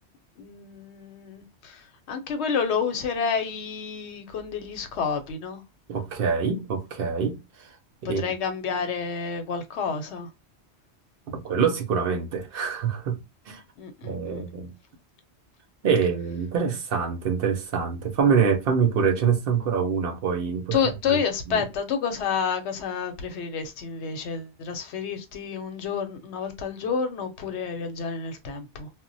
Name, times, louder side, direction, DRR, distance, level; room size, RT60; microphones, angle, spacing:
voice 1, 0.4-5.6 8.0-10.3 13.8-14.4 20.7-28.9, left 6 dB, 85° left, 0.9 m, -29 dB
voice 2, 5.9-7.4 8.1-8.2 11.3-13.2 13.5-13.6 14.0-14.7 15.8-20.8, right 6 dB, 65° right, 0.7 m, -25 dB
2.1 x 2.1 x 3.8 m
omnidirectional pair, 1.1 m